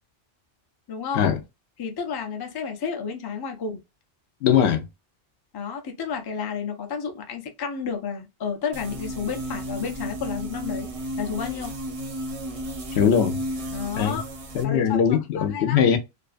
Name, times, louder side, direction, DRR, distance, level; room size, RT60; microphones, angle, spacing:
voice 1, 0.9-1.3 1.8-3.8 5.5-10.9 11.2-11.7 13.7-14.3 14.6-15.8, left 6 dB, 35° left, 0.3 m, -31 dB
voice 2, 4.4-4.9 12.9-13.4 14.0-14.2 14.5-16.0, left 8 dB, 85° left, 0.9 m, -20 dB
sound 1, 8.7-14.6, right 1 dB, 40° right, 0.5 m, -33 dB
2.6 x 2.2 x 2.4 m
omnidirectional pair, 1.1 m